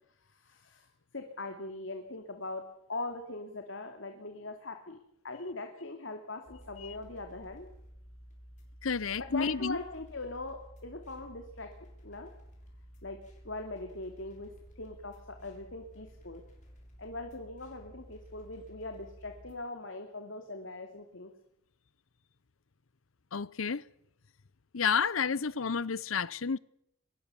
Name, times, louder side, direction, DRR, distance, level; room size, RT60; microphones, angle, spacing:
voice 1, 0.3-0.9 1.1-2.6 2.9-5.0 5.2-7.7 9.2-11.7 12.0-12.3 13.0-13.2 13.4-14.5 14.8-16.4 17.0-21.3, left 2 dB, 65° left, 2.6 m, -41 dB
sound 1, 6.5-19.5, equal, 40° left, 6.7 m, -53 dB
voice 2, 8.8-9.8 23.3-23.8 24.7-26.6, left 6 dB, 90° left, 0.8 m, -30 dB
24.0 x 21.5 x 7.0 m
head